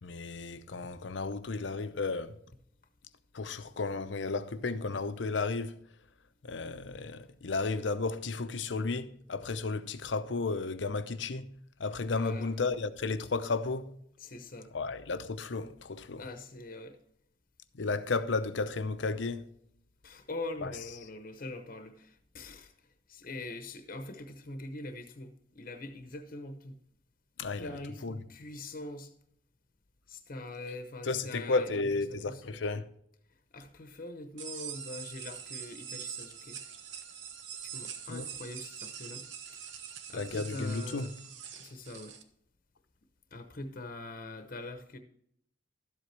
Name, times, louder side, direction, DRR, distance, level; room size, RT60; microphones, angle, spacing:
voice 1, 0.0-2.4 3.3-5.8 6.4-11.5 11.8-13.9 14.7-16.2 17.7-19.5 20.6-20.7 27.4-28.2 31.0-32.9 38.1-38.3 40.1-41.1, left 3 dB, 85° left, 0.7 m, -33 dB
voice 2, 12.1-12.6 14.2-14.7 16.2-17.0 20.0-22.7 23.1-26.8 27.6-29.1 30.1-32.6 33.5-36.6 37.6-39.3 40.1-41.1 41.6-42.2 43.3-45.0, left 2 dB, 50° left, 0.9 m, -43 dB
sound 1, 34.4-42.2, right 8 dB, 85° right, 1.0 m, -44 dB
12.5 x 7.9 x 3.3 m
head